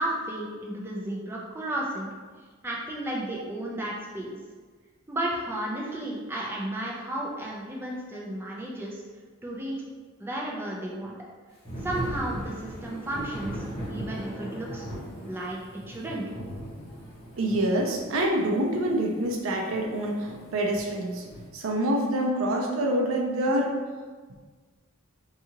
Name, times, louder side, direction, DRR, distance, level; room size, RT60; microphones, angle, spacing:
voice 1, 0.0-2.1 2.6-4.3 5.1-9.0 9.4-9.8 10.2-11.1 11.8-14.8 15.2-15.6 15.9-16.3, right 1 dB, 10° right, -4 dB, 0.4 m, -33 dB
Thunder / Rain, 11.7-21.5, equal, 25° left, 0.9 m, -39 dB
voice 2, 17.4-21.2 21.5-23.8, right 1 dB, 70° right, 1 dB, 0.5 m, -26 dB
2.7 x 2.4 x 2.8 m, 1.4 s
head